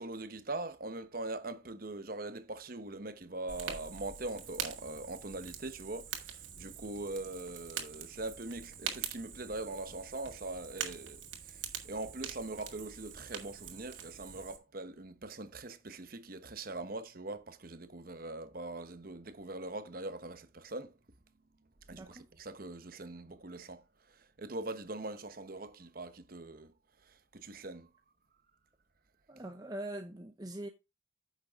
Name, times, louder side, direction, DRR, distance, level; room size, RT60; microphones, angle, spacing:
voice 1, 0.0-20.9 21.9-26.7 27.1-27.9, right 2 dB, 50° right, 1.0 m, -42 dB
Fire, 3.5-14.6, right 8 dB, 80° right, 2.4 m, -44 dB
voice 2, 21.9-22.3 29.3-30.7, right 1 dB, 20° right, 0.7 m, -42 dB
10.0 x 6.7 x 3.6 m
head